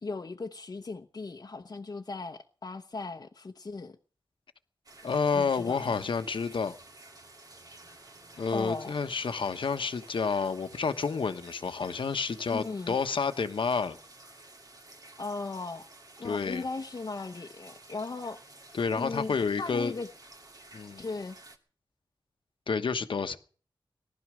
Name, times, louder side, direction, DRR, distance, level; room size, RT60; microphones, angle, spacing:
voice 1, 0.0-4.0 5.3-6.1 8.5-8.9 12.5-13.0 15.2-15.8 16.2-18.4 19.0-20.1 21.0-21.4, left 3 dB, 50° left, 1.0 m, -37 dB
sound 1, 4.9-21.6, right 2 dB, 50° right, 2.4 m, -52 dB
voice 2, 5.0-6.7 8.4-14.0 16.2-16.6 18.7-19.9 20.7-21.1 22.7-23.4, left 5 dB, 80° left, 1.2 m, -29 dB
19.0 x 12.0 x 6.3 m
wide cardioid pair, 110°, 8 cm